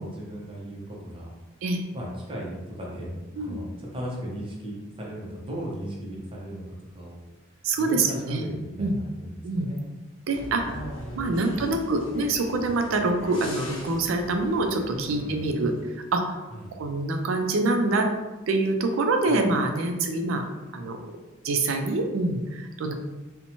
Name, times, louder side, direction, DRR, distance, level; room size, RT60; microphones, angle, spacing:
voice 1, 0.0-1.3 1.9-3.1 3.3-6.6 6.9-7.2 7.8-9.9 10.7-11.7 14.9-15.4 16.5-16.7 19.3-19.5, equal, 25° right, -3 dB, 0.6 m, -37 dB
voice 2, 7.6-8.5 8.8-8.9 9.4-9.7 10.3-10.8 11.2-15.7 16.1-16.5 16.8-18.1 18.5-20.4 20.7-21.0 21.4-22.9, right 2 dB, 80° right, 4 dB, 0.4 m, -25 dB
sound 1, 10.3-15.8, left 1 dB, 70° left, 0.6 m, -42 dB
2.6 x 2.1 x 2.8 m, 1.1 s
head